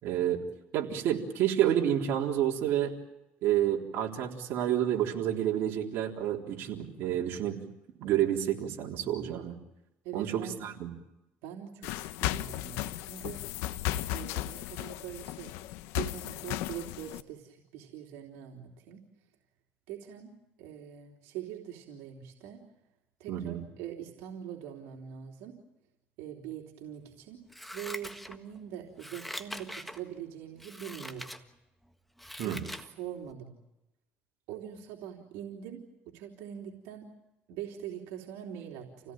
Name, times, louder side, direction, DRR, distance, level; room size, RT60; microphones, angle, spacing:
voice 1, 0.0-0.4 0.7-2.9 3.4-7.6 8.0-9.6 10.1-10.9 23.3-23.6 32.4-32.6, right 11 dB, 65° right, 0 dB, 4.0 m, -29 dB
voice 2, 10.0-10.6 11.4-13.4 14.1-15.5 15.9-19.0 19.9-20.3 20.6-22.6 23.2-25.6 26.2-27.4 27.7-31.4 32.4-33.5 34.5-35.8 36.0-37.1 37.5-39.1, right 10 dB, 85° right, 1 dB, 3.4 m, -43 dB
sound 1, 11.8-17.2, left 14 dB, 85° left, 1.0 m, -35 dB
Scissors, 27.5-28.6 29.0-30.0 30.6-31.4 31.8-32.9 33.3-33.4, equal, ahead, 1.6 m, -43 dB
28.5 x 17.5 x 9.1 m, 0.92 s
cardioid pair, 125°, 4 cm